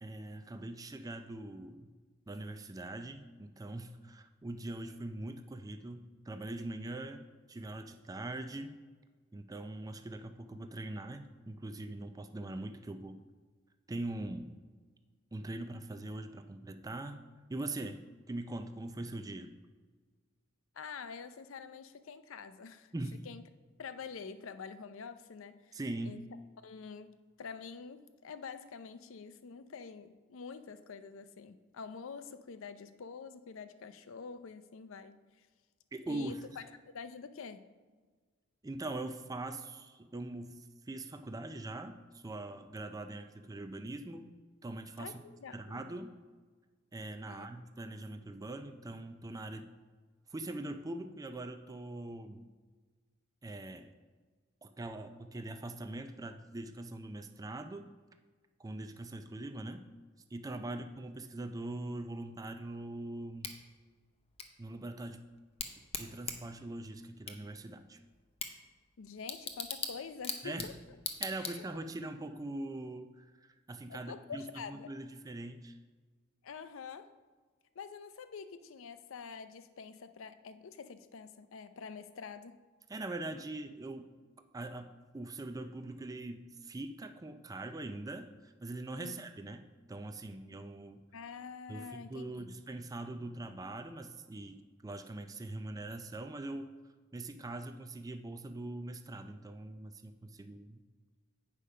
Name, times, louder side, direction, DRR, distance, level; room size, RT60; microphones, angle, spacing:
voice 1, 0.0-1.9 2.3-8.8 9.3-13.2 13.9-14.6 15.3-18.0 18.3-19.5 22.9-23.3 25.7-26.2 35.9-36.4 38.6-44.3 44.6-45.2 45.5-46.1 46.9-49.7 50.3-52.5 53.4-53.9 54.6-57.9 58.6-59.8 60.3-63.5 64.6-65.2 65.9-68.0 70.4-70.7 71.2-75.8 82.9-84.1 84.5-91.0 91.7-94.6 94.8-96.7 97.1-100.8, right 2 dB, 15° right, 8 dB, 0.4 m, -42 dB
voice 2, 20.7-22.9 23.2-23.4 23.8-26.2 26.6-35.5 36.1-37.7 45.0-45.9 47.2-47.5 60.5-60.8 69.0-70.7 71.4-71.6 73.9-74.9 76.4-77.1 77.8-82.6 89.0-89.2 91.1-92.6, left 5 dB, 65° left, 12 dB, 0.5 m, -47 dB
Bicycle / Tick, 63.4-72.0, left 5 dB, 30° left, 0.7 m, -43 dB
8.4 x 5.0 x 5.4 m, 1.4 s
head